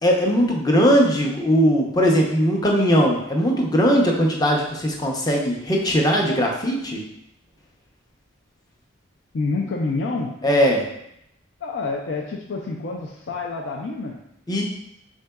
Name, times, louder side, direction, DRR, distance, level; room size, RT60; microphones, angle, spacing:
voice 1, 0.0-7.0 10.4-10.9 14.5-14.6, equal, 20° left, 0 dB, 0.6 m, -19 dB
voice 2, 9.3-10.3 11.6-14.1, left 3 dB, 65° left, -1 dB, 0.5 m, -27 dB
6.3 x 3.6 x 2.3 m, 0.79 s
head